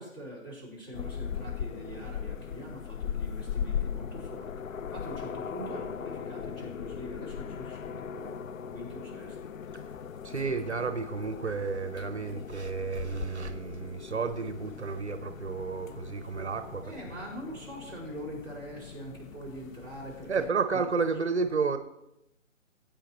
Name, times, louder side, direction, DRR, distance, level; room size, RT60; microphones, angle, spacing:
voice 1, 0.0-4.5 4.9-8.4 8.7-9.4 16.8-20.5 20.7-20.8, equal, 20° left, -7 dB, 4.1 m, -43 dB
sound 1, 0.9-20.5, left 7 dB, 75° left, 0.6 m, -39 dB
voice 2, 10.2-16.9 20.3-21.8, right 5 dB, 55° right, 9 dB, 0.8 m, -31 dB
19.0 x 8.8 x 3.0 m, 0.86 s
hypercardioid pair, 180°, 39 cm